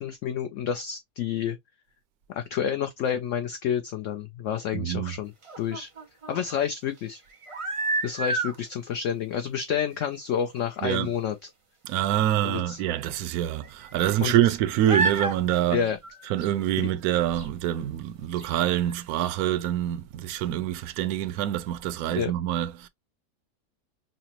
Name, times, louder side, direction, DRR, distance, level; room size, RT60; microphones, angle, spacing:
voice 1, 0.0-1.6 2.3-5.9 6.3-7.2 8.0-11.5 12.4-12.8 14.2-14.6 15.7-16.0 16.8-16.9 22.1-22.3, left 8 dB, 70° left, 0.7 m, -29 dB
voice 2, 4.7-5.1 10.8-11.1 11.8-15.8 16.3-22.9, right 12 dB, 75° right, 1.0 m, -26 dB
sound 1, 5.4-6.4 7.3-8.6 9.6-9.7 10.0-10.1 10.6-10.7 10.9-11.0 12.7-12.8 13.6-14.5 14.9-15.4 15.8-16.6 17.4-17.5 18.4-18.5 18.9-19.0 19.2-19.3, right 3 dB, 40° right, 0.4 m, -30 dB
5.7 x 2.0 x 2.9 m
omnidirectional pair, 1.7 m